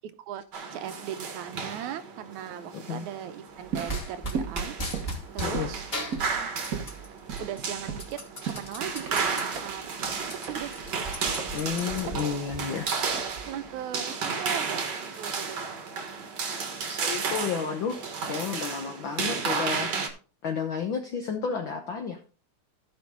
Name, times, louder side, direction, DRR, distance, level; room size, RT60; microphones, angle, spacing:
sound 1, 0.5-20.1, right 5 dB, 45° right, 1.5 m, -33 dB
voice 1, 0.7-5.9 7.4-8.2 8.5-9.9 10.3-11.6 12.1-12.4 13.5-15.6, right 10 dB, 80° right, 11 dB, 2.0 m, -39 dB
voice 2, 2.7-3.1 5.4-5.7 11.5-12.9 16.9-18.0 18.3-20.0 20.4-22.2, left 6 dB, 80° left, 5 dB, 1.1 m, -31 dB
sound 2, 3.5-13.7, right 6 dB, 65° right, 0.9 m, -38 dB
sound 3, 3.9-5.6 5.9-7.1 7.4-9.4 9.9-10.0 10.2-12.6, right 1 dB, 20° left, 2.6 m, -36 dB
15.5 x 5.3 x 3.7 m, 0.36 s
omnidirectional pair, 3.6 m